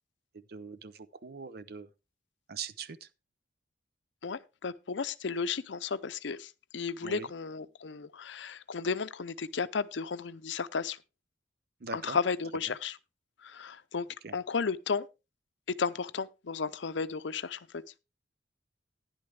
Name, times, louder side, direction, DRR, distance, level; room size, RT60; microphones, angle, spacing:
voice 1, 0.3-1.9 2.5-3.1 7.0-7.3 11.8-12.2 14.2-14.3, right 5 dB, 55° right, 0.6 m, -42 dB
voice 2, 4.2-11.0 11.9-12.9 13.4-14.1 14.3-15.1 15.8-17.7, left 5 dB, 75° left, 0.6 m, -33 dB
12.0 x 10.5 x 3.4 m
head